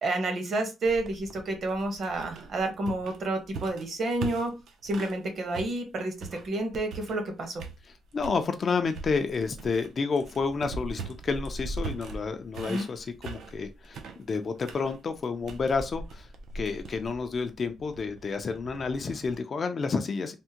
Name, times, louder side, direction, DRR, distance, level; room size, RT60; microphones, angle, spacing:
voice 1, 0.0-4.5 4.8-7.6 12.7-12.9, right 2 dB, 45° right, 0.9 m, -30 dB
sound 1, 0.8-5.2 5.5-7.3 7.6-8.4 8.9-19.4, right 3 dB, 70° right, 0.5 m, -41 dB
voice 2, 8.1-14.0 14.3-16.3 16.5-20.3, left 4 dB, 35° left, 0.3 m, -30 dB
3.4 x 2.1 x 2.8 m
cardioid pair, 165°, 0 cm